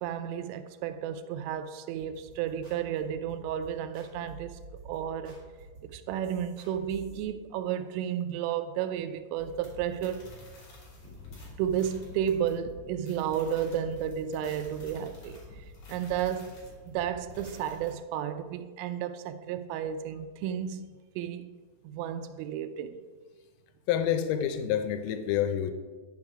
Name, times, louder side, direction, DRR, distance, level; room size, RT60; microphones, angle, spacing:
voice 1, 0.0-4.6 4.9-5.4 5.9-10.2 11.6-15.4 15.9-16.6 16.9-20.9 21.2-21.5 21.8-23.0, right 9 dB, 85° right, 3.2 m, -32 dB
sound 1, 2.0-7.2, right 3 dB, 40° right, 2.8 m, -50 dB
sound 2, 9.3-17.9, left 2 dB, 45° left, 3.6 m, -48 dB
voice 2, 23.9-25.7, left 9 dB, 85° left, 3.3 m, -28 dB
9.6 x 7.4 x 4.8 m
omnidirectional pair, 5.7 m